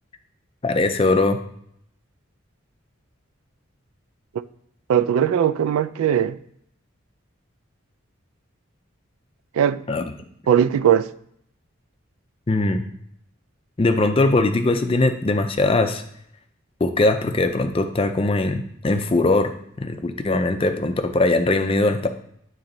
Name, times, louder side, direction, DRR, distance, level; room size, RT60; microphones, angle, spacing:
voice 1, 0.6-1.4 9.9-10.1 12.5-12.8 13.8-16.0 16.8-19.5 19.8-22.1, left 2 dB, 25° left, 0.4 m, -20 dB
voice 2, 4.9-6.4 9.5-9.8 10.5-11.1, right 9 dB, 85° right, 0.3 m, -19 dB
8.6 x 3.1 x 3.9 m
head